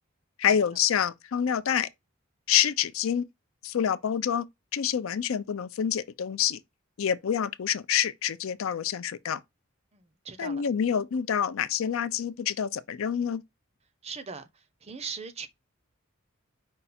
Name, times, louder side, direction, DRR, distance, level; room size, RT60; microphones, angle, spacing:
voice 1, 0.4-1.9 2.5-3.2 3.6-4.5 4.7-6.6 7.0-9.4 10.4-13.4, left 8 dB, 75° left, 0.4 m, -27 dB
voice 2, 9.9-10.6 14.0-14.5 14.8-15.5, right 5 dB, 30° right, 0.6 m, -39 dB
5.3 x 2.3 x 4.2 m
head